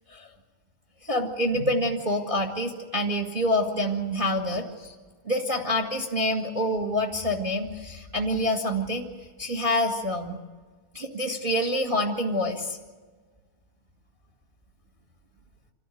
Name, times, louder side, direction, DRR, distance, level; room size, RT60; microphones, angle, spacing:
voice 1, 1.0-4.9 5.2-9.0 9.4-10.4 10.9-12.8, left 1 dB, 20° right, 1 dB, 1.6 m, -27 dB
27.5 x 13.5 x 9.3 m, 1.4 s
omnidirectional pair, 3.7 m